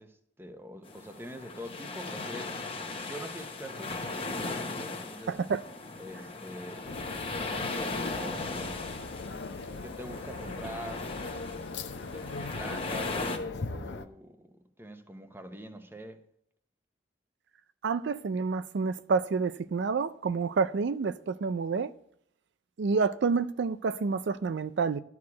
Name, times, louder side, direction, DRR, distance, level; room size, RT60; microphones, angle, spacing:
voice 1, 0.0-2.6 3.0-5.4 6.0-6.9 7.5-8.8 9.8-11.1 12.1-16.2, right 1 dB, 15° right, 1.0 m, -44 dB
sound 1, 0.8-13.4, left 3 dB, 30° left, 1.1 m, -38 dB
sound 2, 6.8-14.0, left 3 dB, 70° left, 0.8 m, -39 dB
voice 2, 17.8-21.9 22.8-25.0, right 5 dB, 70° right, 0.4 m, -28 dB
12.0 x 4.7 x 8.4 m
head